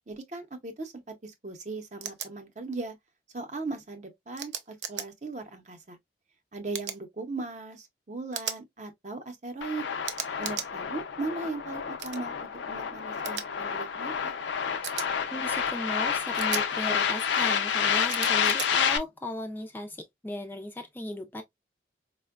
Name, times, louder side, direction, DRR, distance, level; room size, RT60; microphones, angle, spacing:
voice 1, 0.0-2.9 3.3-6.0 6.5-9.9 10.4-14.3, right 3 dB, 40° right, 0.6 m, -38 dB
sound 1, 2.0-2.3 4.4-5.1 6.7-7.0 8.3-8.6 10.0-10.7 12.0-12.2 13.2-13.4 14.8-15.1 16.3-16.6 18.1-18.7, right 9 dB, 80° right, 0.5 m, -35 dB
sound 2, 9.6-19.0, left 7 dB, 85° left, 0.5 m, -29 dB
voice 2, 15.3-21.4, left 1 dB, 10° left, 0.3 m, -36 dB
4.3 x 2.1 x 2.3 m
head